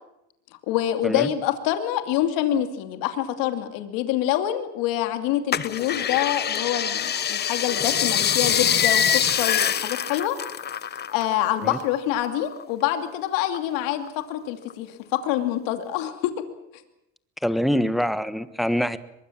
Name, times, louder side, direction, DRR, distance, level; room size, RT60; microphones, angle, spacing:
voice 1, 0.6-10.4 11.1-16.3, left 12 dB, 75° left, 7 dB, 2.7 m, -26 dB
sound 1, 5.5-11.4 11.6-12.9 13.4-14.2 14.7-14.8, left 9 dB, 30° left, 1.0 m, -24 dB
voice 2, 17.4-19.0, equal, ahead, 12 dB, 1.3 m, -24 dB
23.5 x 22.5 x 7.5 m, 0.82 s
cardioid pair, 125°, 34 cm